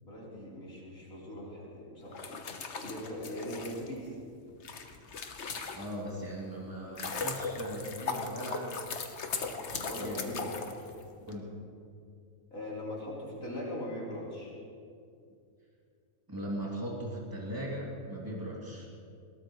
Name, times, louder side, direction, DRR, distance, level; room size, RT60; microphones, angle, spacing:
voice 1, 0.0-2.2 2.8-4.1 9.4-10.5 12.5-14.5, left 1 dB, 80° left, -6 dB, 4.4 m, -40 dB
sound 1, 2.0-6.2 6.6-11.3, left 4 dB, 55° left, 1.3 m, -38 dB
voice 2, 5.7-8.8 10.0-10.5 11.3-11.5 16.3-18.9, equal, 15° right, -4 dB, 2.9 m, -38 dB
20.5 x 17.5 x 3.2 m, 2.4 s
omnidirectional pair, 1.4 m